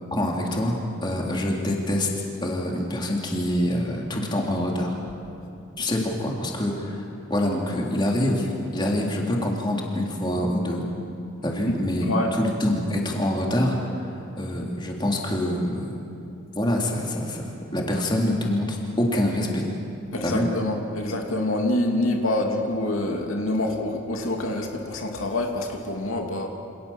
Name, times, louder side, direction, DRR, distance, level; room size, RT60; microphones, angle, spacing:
voice 1, 0.1-2.1 2.4-5.0 5.8-10.8 11.4-13.8 14.4-15.9 16.6-19.7 20.2-20.5, left 1 dB, 20° left, -1 dB, 3.6 m, -25 dB
voice 2, 11.7-12.3 20.1-26.5, left 1 dB, 75° left, 2 dB, 2.9 m, -26 dB
28.5 x 27.0 x 7.4 m, 2.8 s
head